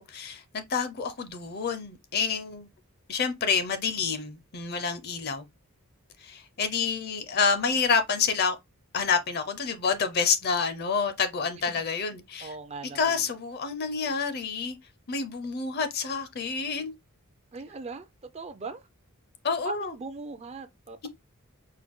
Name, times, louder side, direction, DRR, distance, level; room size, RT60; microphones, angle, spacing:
voice 1, 0.0-2.7 3.1-5.5 6.2-8.6 8.9-12.6 12.9-14.8 15.1-16.9 19.4-19.9, left 5 dB, 45° left, 0.5 m, -28 dB
voice 2, 12.4-13.2 17.5-18.1 18.3-18.8 19.6-21.1, right 4 dB, 30° right, 0.4 m, -39 dB
4.6 x 2.2 x 3.5 m
head